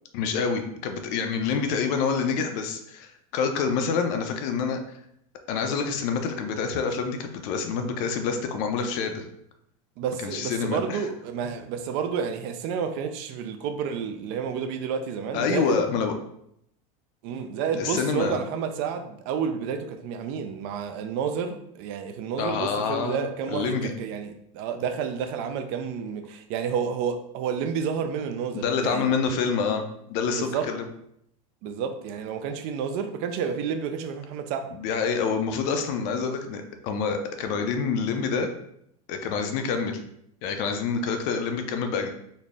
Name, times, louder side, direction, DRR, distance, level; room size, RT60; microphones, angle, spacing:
voice 1, 0.1-4.8 5.5-9.2 10.2-11.0 15.3-16.1 17.7-18.4 22.4-23.9 28.5-29.8 30.1-30.9 34.7-38.5 39.1-40.0 40.4-42.1, left 5 dB, 50° left, 0.5 m, -27 dB
voice 2, 10.0-15.8 17.2-29.1 30.4-30.7 31.6-34.7, right 7 dB, 50° right, 0.4 m, -30 dB
4.0 x 2.0 x 3.4 m
supercardioid pair, 150°, 18 cm